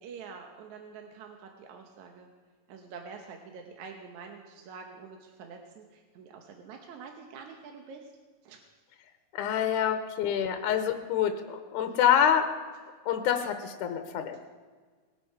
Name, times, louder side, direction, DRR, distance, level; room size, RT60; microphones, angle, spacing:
voice 1, 0.0-2.3 2.7-8.1 8.4-8.6, right 5 dB, 65° right, 3 dB, 2.1 m, -46 dB
voice 2, 9.3-12.5 13.1-14.4, left 9 dB, 70° left, 7 dB, 2.2 m, -26 dB
20.5 x 8.8 x 5.6 m, 1.5 s
omnidirectional pair, 4.0 m